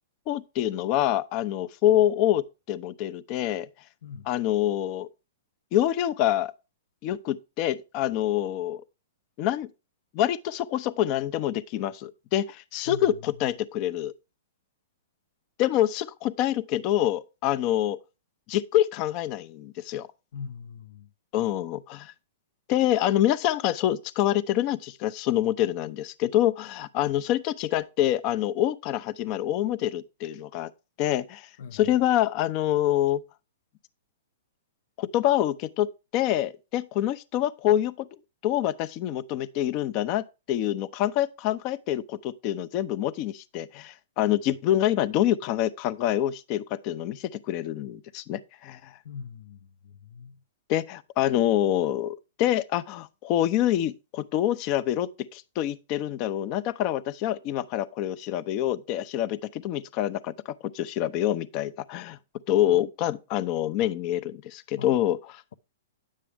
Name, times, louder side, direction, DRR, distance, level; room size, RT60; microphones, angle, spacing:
voice 1, 0.3-3.7 4.2-5.1 5.7-6.5 7.0-8.8 9.4-9.7 10.1-14.1 15.6-18.0 18.5-20.1 21.3-22.1 22.7-30.7 31.0-33.2 35.0-38.1 38.4-48.9 50.7-62.2 62.5-65.4, left 12 dB, 40° left, 0.7 m, -26 dB
voice 2, 20.3-21.1 31.6-31.8 49.0-49.6 49.8-50.4 64.8-64.9, left 6 dB, 70° left, 0.8 m, -40 dB
10.0 x 7.5 x 3.5 m
hypercardioid pair, 135°, 0 cm